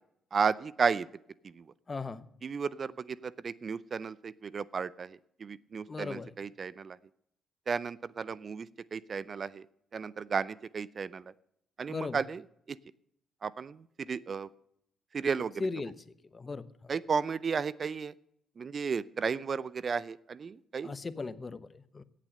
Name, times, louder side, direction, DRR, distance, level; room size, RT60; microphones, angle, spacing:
voice 1, 0.3-1.1 1.4-1.6 2.4-7.0 7.7-9.7 9.9-11.3 11.8-12.4 12.7-12.8 13.4-14.5 15.1-15.6 16.9-18.1 18.6-20.9, right 5 dB, 50° right, 21 dB, 0.5 m, -33 dB
voice 2, 1.9-2.3 5.9-6.3 11.9-12.2 15.6-15.9 16.3-16.9 20.8-22.0, left 3 dB, 35° left, 15 dB, 1.0 m, -37 dB
17.0 x 7.5 x 6.5 m, 0.75 s
hypercardioid pair, 50°, 0 cm